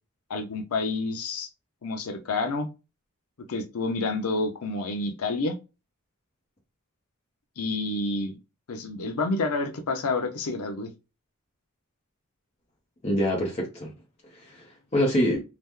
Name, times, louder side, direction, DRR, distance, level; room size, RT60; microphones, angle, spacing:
voice 1, 0.3-1.5 1.8-2.7 3.5-5.5 7.6-8.4 8.7-10.9, left 3 dB, 85° left, 0.6 m, -29 dB
voice 2, 13.0-13.9 14.3-15.4, equal, 30° left, 0.7 m, -26 dB
2.9 x 2.0 x 3.5 m
head